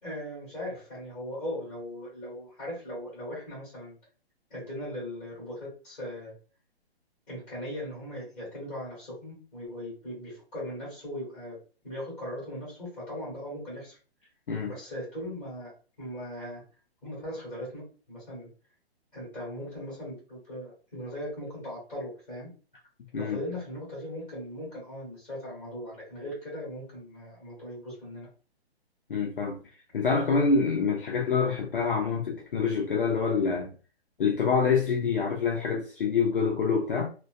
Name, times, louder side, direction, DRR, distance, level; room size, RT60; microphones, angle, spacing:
voice 1, 0.0-3.9 4.5-6.3 7.3-11.6 11.8-14.0 14.6-15.7 16.0-16.6 17.0-18.5 19.1-22.5 23.1-28.3, equal, 10° left, 1.3 m, -39 dB
voice 2, 29.1-29.6 29.9-33.7 34.2-37.1, left 5 dB, 55° left, 0.5 m, -26 dB
2.5 x 2.1 x 2.3 m
hypercardioid pair, 175°, 32 cm